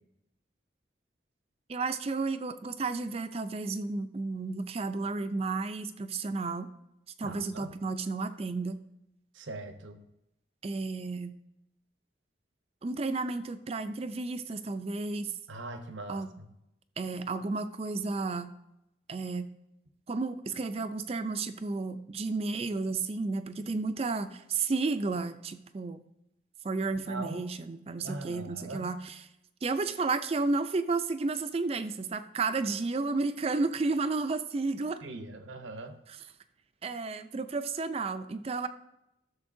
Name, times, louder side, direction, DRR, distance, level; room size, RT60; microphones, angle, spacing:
voice 1, 1.7-6.7 7.2-8.8 10.6-11.4 12.8-15.3 16.1-16.3 17.0-18.5 19.1-19.5 20.1-26.0 26.6-29.3 29.6-35.0 36.1-36.2 36.8-38.7, right 3 dB, 30° right, 10 dB, 0.4 m, -32 dB
voice 2, 7.2-7.8 9.3-10.0 15.5-16.5 27.1-27.4 28.0-29.0 35.0-36.0, right 2 dB, 80° right, 7 dB, 0.8 m, -41 dB
12.5 x 6.8 x 2.6 m, 0.84 s
head